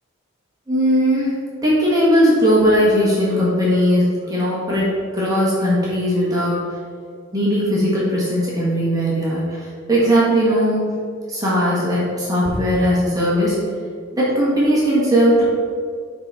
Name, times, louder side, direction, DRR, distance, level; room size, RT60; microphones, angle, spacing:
voice 1, 0.7-1.4 1.6-6.6 7.3-10.8 11.3-13.6 14.1-15.4, equal, 20° right, -8 dB, 1.5 m, -18 dB
6.8 x 3.9 x 4.7 m, 2.2 s
head